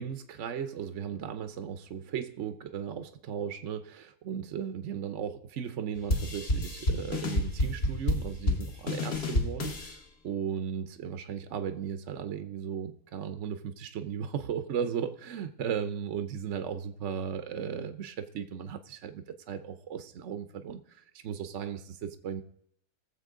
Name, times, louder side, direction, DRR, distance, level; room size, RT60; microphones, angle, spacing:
voice 1, 0.0-22.4, right 8 dB, 60° right, 9 dB, 1.0 m, -36 dB
sound 1, 6.1-9.9, left 1 dB, 45° left, 1.5 m, -29 dB
20.0 x 7.2 x 3.7 m, 0.70 s
omnidirectional pair, 1.5 m